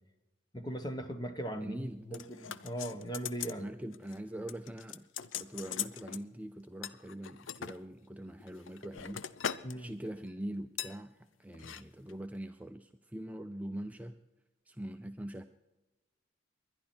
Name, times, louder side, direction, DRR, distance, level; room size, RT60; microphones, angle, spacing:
voice 1, 0.5-3.6 9.6-9.9, right 1 dB, 20° left, 8 dB, 1.1 m, -39 dB
voice 2, 1.6-2.3 3.6-5.1 5.4-9.2 9.7-14.2 14.7-15.4, right 1 dB, 10° right, 7 dB, 0.4 m, -43 dB
sound 1, 2.1-3.6 3.9-4.2 4.5-6.2 6.8-7.8 8.4-9.8 10.0-10.3 10.8-11.0 11.5-11.8 12.1-12.2, left 8 dB, 80° left, 0.6 m, -40 dB
22.0 x 10.5 x 4.4 m, 1.1 s
head